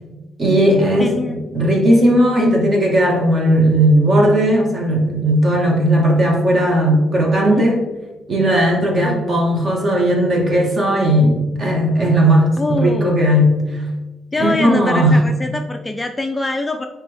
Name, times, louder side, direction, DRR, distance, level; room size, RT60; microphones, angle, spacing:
voice 1, 0.4-7.8 8.3-13.8 14.4-15.2, equal, 35° right, 0 dB, 1.6 m, -16 dB
voice 2, 1.0-1.4 7.5-7.6 9.0-9.3 12.6-13.2 14.3-16.9, left 2 dB, 15° left, 6 dB, 0.4 m, -23 dB
9.5 x 3.4 x 3.4 m, 1.1 s
cardioid pair, 120°, 0 cm